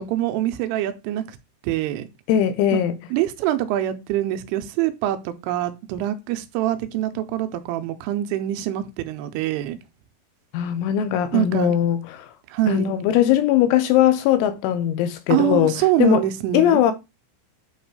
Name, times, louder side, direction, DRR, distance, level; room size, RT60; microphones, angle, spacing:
voice 1, 0.0-1.4 1.6-2.1 2.7-2.8 3.1-9.8 11.3-11.7 12.5-12.9 15.3-16.8, right 13 dB, 85° right, 3.1 m, -24 dB
voice 2, 2.3-3.0 10.5-12.3 12.7-16.2 16.5-16.9, left 11 dB, 80° left, 2.9 m, -20 dB
8.7 x 2.9 x 4.7 m
omnidirectional pair, 5.8 m